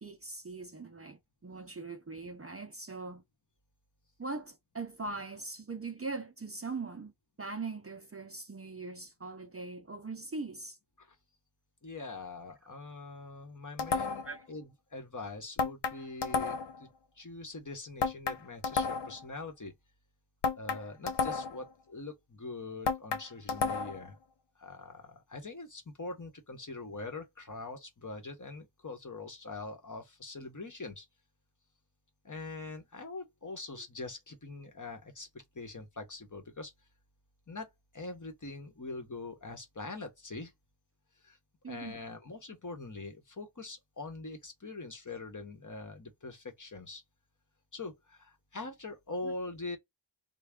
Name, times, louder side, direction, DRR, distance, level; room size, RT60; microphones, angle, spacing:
voice 1, 0.0-3.2 4.2-7.1 7.4-10.8 14.2-14.5 41.6-42.0 49.2-49.4, right 3 dB, 30° right, 0.5 m, -41 dB
voice 2, 11.8-16.9 17.2-19.7 20.6-24.2 24.6-31.1 32.2-36.7 37.5-37.7 37.9-40.5 41.2-41.4 41.7-47.0 47.7-49.8, left 3 dB, 40° left, 1.0 m, -43 dB
sound 1, 13.8-14.4 15.6-16.8 18.0-19.2 20.4-21.7 22.9-24.1, left 5 dB, 70° left, 0.6 m, -32 dB
3.3 x 2.2 x 3.6 m
wide cardioid pair, 55°, 44 cm